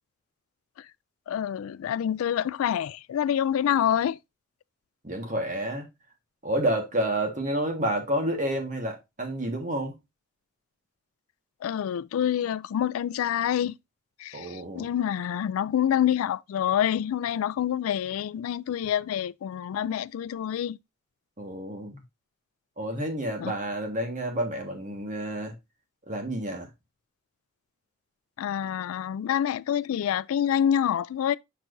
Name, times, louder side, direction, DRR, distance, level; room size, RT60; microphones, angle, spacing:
voice 1, 1.3-4.2 11.6-13.7 14.2-20.8 23.4-23.5 28.4-31.4, left 9 dB, 90° left, 0.3 m, -27 dB
voice 2, 5.0-5.9 6.4-10.0 14.3-14.9 21.4-22.0 22.8-25.5 26.1-26.7, right 1 dB, 35° right, 1.5 m, -29 dB
6.4 x 5.9 x 2.6 m
head